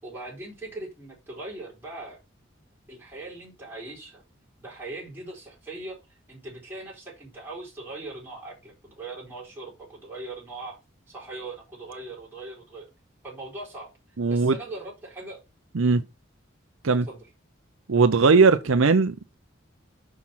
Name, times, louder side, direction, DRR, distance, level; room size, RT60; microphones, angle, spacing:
voice 1, 0.0-2.2 2.9-4.2 4.6-10.8 11.1-12.9 13.2-13.9 14.3-15.4 16.9-17.3, right 2 dB, 10° right, 4.0 m, -40 dB
voice 2, 14.2-14.6 15.7-16.0 16.8-17.1 17.9-19.3, right 4 dB, 85° right, 0.7 m, -19 dB
6.2 x 6.0 x 5.7 m
head